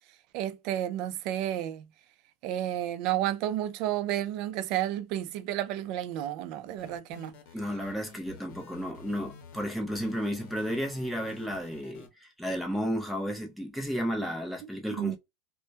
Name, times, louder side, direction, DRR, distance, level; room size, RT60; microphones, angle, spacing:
voice 1, 0.3-1.9 2.4-7.3 14.9-15.2, right 12 dB, 55° right, 0.3 m, -31 dB
sound 1, 6.8-12.1, left 6 dB, 65° left, 0.8 m, -50 dB
voice 2, 7.5-15.2, equal, ahead, 0.5 m, -33 dB
2.2 x 2.1 x 2.7 m
supercardioid pair, 135°, 0 cm